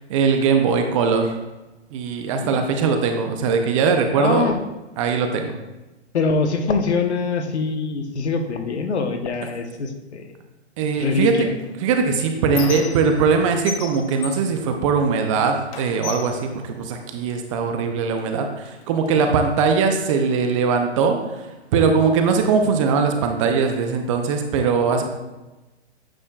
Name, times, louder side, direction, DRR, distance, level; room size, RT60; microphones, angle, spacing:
voice 1, 0.1-1.4 1.9-4.5 5.0-5.6 10.8-11.5 11.8-21.5 21.7-25.0, right 5 dB, 30° right, 5 dB, 0.6 m, -20 dB
voice 2, 2.4-2.7 4.1-4.6 6.1-10.3 11.0-11.5 19.2-19.3, left 4 dB, 75° left, 6 dB, 1.1 m, -24 dB
Squeak, 11.6-13.4 13.7-15.3 15.7-17.4 18.2-18.3 18.6-19.7, left 7 dB, 30° left, 0.6 m, -35 dB
8.8 x 6.3 x 2.4 m, 1.1 s
hypercardioid pair, 130°, 34 cm